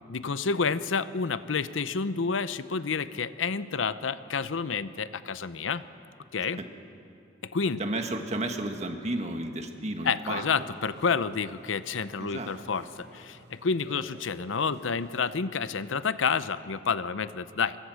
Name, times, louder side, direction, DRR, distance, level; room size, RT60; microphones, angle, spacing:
voice 1, 0.1-5.8 6.3-6.6 7.4-7.8 10.0-17.8, left 5 dB, 80° left, 14 dB, 0.7 m, -29 dB
voice 2, 7.8-10.4 12.2-12.5, right 2 dB, 35° right, 5 dB, 1.7 m, -32 dB
sound 1, 10.2-15.3, right 2 dB, 60° right, 3.3 m, -54 dB
24.0 x 22.5 x 6.4 m, 2.6 s
head